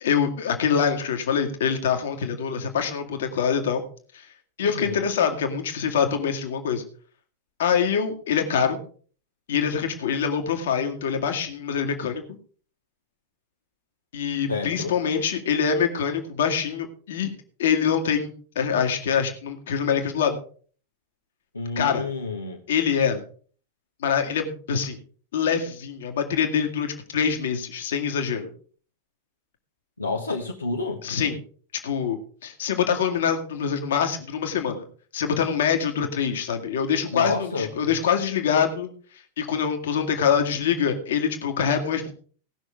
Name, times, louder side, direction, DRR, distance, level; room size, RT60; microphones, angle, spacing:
voice 1, 0.0-3.8 4.1-4.3 4.6-6.8 7.6-8.8 9.5-12.2 14.1-17.3 17.6-20.4 21.8-22.1 22.7-23.2 24.0-25.0 25.3-28.5 31.0-31.4 31.8-34.9 35.1-38.9 39.4-42.1, left 7 dB, 60° left, 2.0 m, -24 dB
voice 2, 4.6-5.0 14.5-14.9 21.5-22.6 30.0-31.0 37.1-38.0, left 3 dB, 80° left, 1.4 m, -29 dB
18.0 x 6.2 x 5.0 m
figure-of-eight pair, 90°, 0 cm